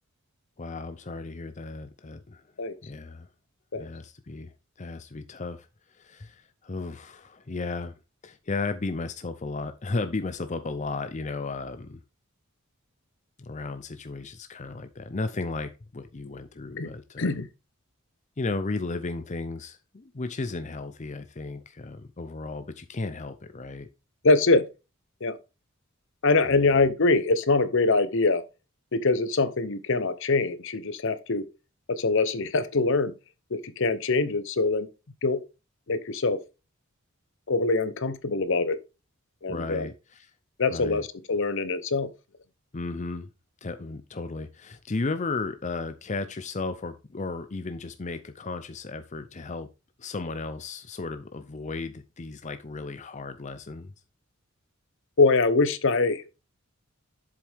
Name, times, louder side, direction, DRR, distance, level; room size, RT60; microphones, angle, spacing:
voice 1, 0.6-2.4 2.8-3.3 3.7-12.0 13.4-17.4 18.4-23.9 26.4-26.8 39.5-40.3 40.7-41.1 42.7-43.3 43.6-49.7 50.0-53.9, left 3 dB, 35° left, 0.6 m, -34 dB
voice 2, 24.2-24.7 25.2-25.4 26.2-28.4 28.9-31.5 31.9-33.1 33.5-34.9 35.2-35.4 35.9-36.4 37.5-38.8 39.4-39.8 40.6-42.1 55.2-56.2, left 3 dB, 65° left, 0.9 m, -23 dB
7.7 x 7.6 x 3.5 m
head